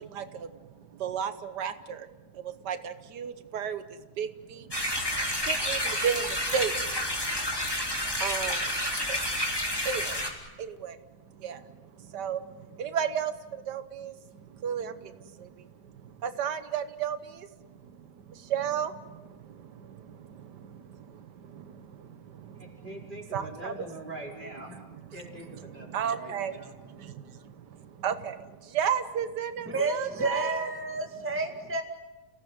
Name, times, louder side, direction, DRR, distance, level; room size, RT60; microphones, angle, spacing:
voice 1, 0.0-2.1 2.3-4.7 5.0-7.0 8.2-8.8 9.1-9.2 9.8-10.2 10.6-22.9 23.3-23.9 25.9-30.7, right 8 dB, 90° right, 11 dB, 1.7 m, -34 dB
sound 1, 4.7-10.3, equal, 15° left, 3.3 m, -30 dB
voice 2, 22.5-24.8 25.1-26.8, right 1 dB, 30° right, -1 dB, 5.1 m, -43 dB
voice 3, 29.7-31.8, right 2 dB, 5° right, 3 dB, 2.0 m, -30 dB
30.0 x 17.0 x 9.6 m, 1.2 s
omnidirectional pair, 1.8 m